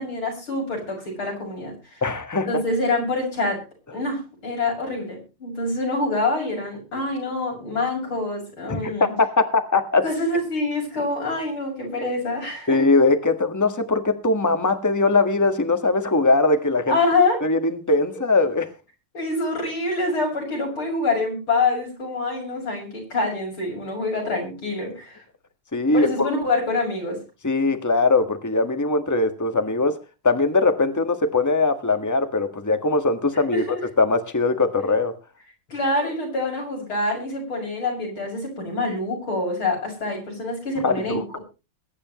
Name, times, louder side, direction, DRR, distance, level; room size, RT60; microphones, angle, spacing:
voice 1, 0.0-2.0 2.5-3.6 3.9-9.1 10.0-12.8 16.9-17.4 18.1-18.2 19.1-25.2 25.9-27.2 33.5-33.8 35.7-41.4, left 2 dB, 80° left, -1 dB, 7.4 m, -26 dB
voice 2, 2.0-2.5 8.7-10.0 12.7-17.0 17.4-18.7 25.7-26.3 27.4-30.0 30.2-33.6 34.0-35.1 40.8-41.2, left 3 dB, 10° left, 8 dB, 1.4 m, -21 dB
22.0 x 10.0 x 3.1 m, 0.31 s
omnidirectional pair, 2.3 m